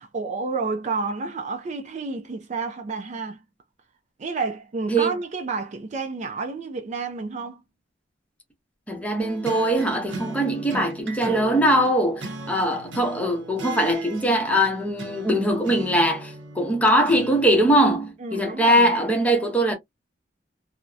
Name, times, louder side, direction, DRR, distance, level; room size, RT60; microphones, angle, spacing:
voice 1, 0.0-3.4 4.2-7.6 18.2-18.9, right 4 dB, 40° right, 0.4 m, -30 dB
voice 2, 8.9-19.7, right 1 dB, 10° left, 0.7 m, -21 dB
sound 1, 9.2-17.8, right 3 dB, 75° right, 0.7 m, -38 dB
2.6 x 2.0 x 2.3 m
head